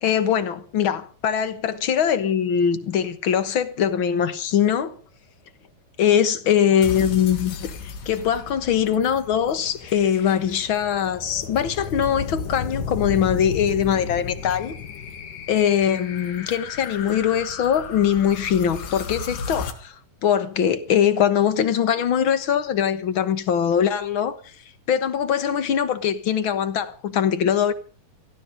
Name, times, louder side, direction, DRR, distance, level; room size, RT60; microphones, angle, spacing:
voice 1, 0.0-5.0 6.0-14.8 15.5-19.9 20.2-24.4 24.9-27.7, left 8 dB, 60° left, 1.4 m, -22 dB
sound 1, 6.8-19.7, left 5 dB, 80° left, 3.5 m, -34 dB
17.5 x 15.0 x 5.2 m
omnidirectional pair, 3.8 m